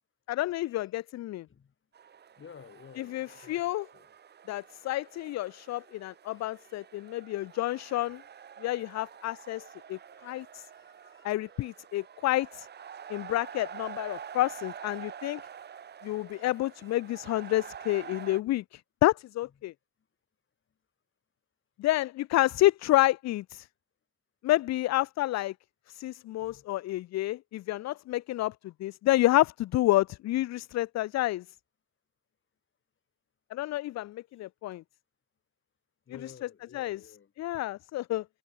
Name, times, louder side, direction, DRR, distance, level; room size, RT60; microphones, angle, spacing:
voice 1, 0.3-1.5 3.0-3.9 4.5-8.2 8.6-10.6 11.2-12.7 13.1-15.4 16.0-19.7 21.8-23.7 24.4-25.5 25.9-28.5 28.8-31.4 33.5-34.8 36.2-36.3 36.7-37.0 37.4-38.2, left 16 dB, 60° left, 0.5 m, -29 dB
sound 1, 1.9-18.4, right 8 dB, 35° right, 0.6 m, -47 dB
voice 2, 2.4-4.1 5.7-5.8 6.2-6.5 10.2-10.4 10.7-11.3 11.5-11.6 16.3-17.0 26.4-26.6 36.1-37.3, left 7 dB, 40° left, 2.1 m, -54 dB
cardioid pair, 90°, 30 cm